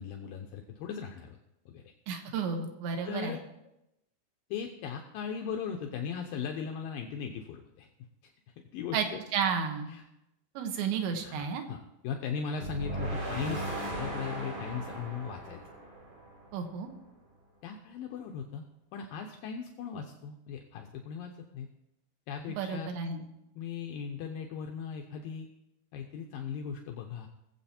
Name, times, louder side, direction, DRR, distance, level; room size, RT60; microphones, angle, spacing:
voice 1, 0.0-1.4 1.7-1.9 3.0-3.4 4.5-7.9 8.2-8.3 8.7-9.2 9.9-10.0 11.2-15.6 17.6-18.6 18.9-21.7 22.3-22.9 23.6-25.5 25.9-27.3, left 6 dB, 80° left, 3 dB, 2.1 m, -38 dB
voice 2, 2.1-3.4 8.9-9.1 9.3-9.9 10.6-11.6 16.5-16.9 22.6-23.2, right 6 dB, 80° right, 4 dB, 3.6 m, -32 dB
sound 1, 12.6-16.7, right 1 dB, 45° right, 5.2 m, -37 dB
21.0 x 7.8 x 4.3 m, 0.87 s
omnidirectional pair, 5.1 m